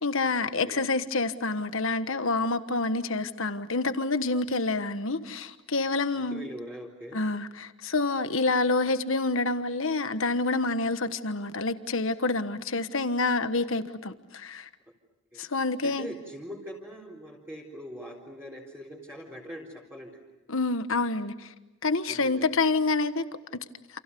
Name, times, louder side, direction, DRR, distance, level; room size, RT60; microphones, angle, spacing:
voice 1, 0.0-6.5 7.1-14.7 15.4-16.1 20.5-21.5 21.8-23.3 23.5-23.6, left 3 dB, 60° left, 1.4 m, -27 dB
voice 2, 6.1-7.2 15.3-15.4 15.8-20.1 22.1-22.4, equal, 10° right, 3.9 m, -42 dB
29.0 x 28.5 x 6.9 m
head